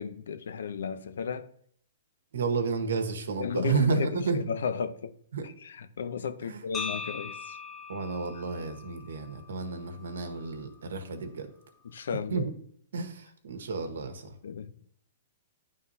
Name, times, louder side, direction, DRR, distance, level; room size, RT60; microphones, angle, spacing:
voice 1, 0.0-1.5 3.4-5.1 5.6-7.6 11.8-12.5 14.4-14.7, left 6 dB, 75° left, 0.6 m, -34 dB
voice 2, 2.3-4.4 5.3-5.5 6.5-6.6 7.9-11.5 12.1-12.5 12.9-14.3, right 5 dB, 75° right, 1.2 m, -31 dB
Soleri Windbell, 6.7-10.8, left 5 dB, 15° left, 0.6 m, -41 dB
11.0 x 3.7 x 2.7 m
hypercardioid pair, 125°, 0 cm